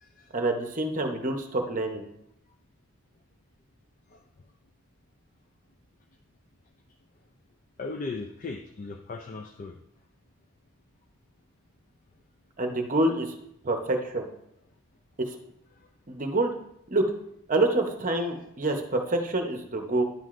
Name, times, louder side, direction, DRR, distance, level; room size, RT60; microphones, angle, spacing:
voice 1, 0.3-2.0 12.6-13.3 13.6-14.3 15.2-15.4 16.1-16.5 16.9-17.0 17.5-20.0, right 2 dB, 35° right, 4 dB, 0.8 m, -27 dB
voice 2, 7.8-9.8, left 3 dB, 35° left, 5 dB, 0.3 m, -37 dB
10.5 x 7.6 x 2.5 m, 0.77 s
head